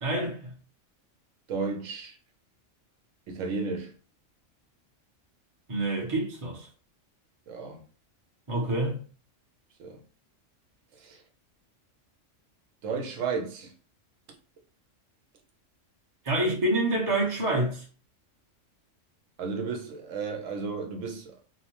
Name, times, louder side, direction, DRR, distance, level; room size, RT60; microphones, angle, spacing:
voice 1, 0.0-0.5 5.7-6.7 8.5-9.0 16.2-17.8, right 1 dB, 30° right, 0.7 m, -27 dB
voice 2, 1.5-2.2 3.3-3.9 7.5-7.8 9.8-10.0 10.9-11.2 12.8-13.7 19.4-21.3, right 4 dB, 85° right, 1.1 m, -33 dB
2.9 x 2.0 x 2.9 m
omnidirectional pair, 1.3 m